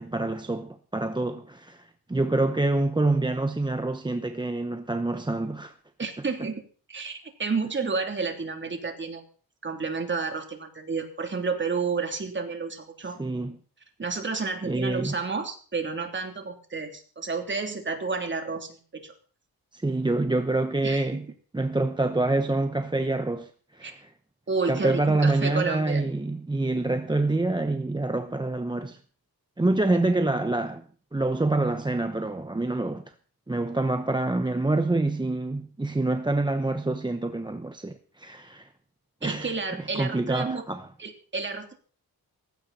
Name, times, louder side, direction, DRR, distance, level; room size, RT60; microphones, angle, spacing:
voice 1, 0.0-5.7 13.2-13.6 14.6-15.1 19.7-24.1 24.7-29.0 29.6-30.8 31.1-33.0 33.5-38.7 39.2-40.9, right 2 dB, 10° right, 0.9 m, -26 dB
voice 2, 6.0-6.6 6.9-9.2 9.6-13.2 14.0-19.1 20.8-21.1 23.8-23.9 24.5-26.0 39.2-40.6 41.0-41.7, right 4 dB, 30° right, 3.2 m, -30 dB
18.0 x 15.5 x 4.3 m
wide cardioid pair, 125°, 38 cm